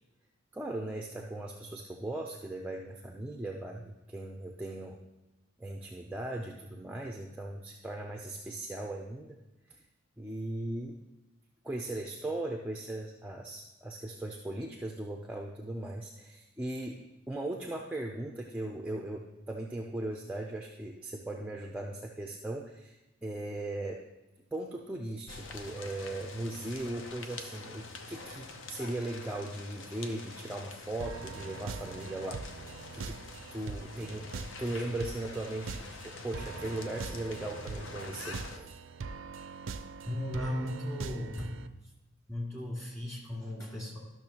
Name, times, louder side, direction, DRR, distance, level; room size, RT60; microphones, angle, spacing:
voice 1, 0.5-5.0 5.6-9.4 9.7-9.8 10.2-11.0 11.6-17.0 17.3-24.0 24.5-32.4 32.9-33.2 33.5-38.8, right 1 dB, 5° right, 0 dB, 0.4 m, -38 dB
sound 1, 25.3-38.6, left 3 dB, 65° left, 0.7 m, -46 dB
sound 2, 31.0-41.7, right 4 dB, 65° right, 0.4 m, -43 dB
voice 2, 40.0-41.6 42.3-44.0, left 1 dB, 15° left, -4 dB, 2.3 m, -36 dB
12.0 x 6.2 x 2.9 m, 1.0 s
head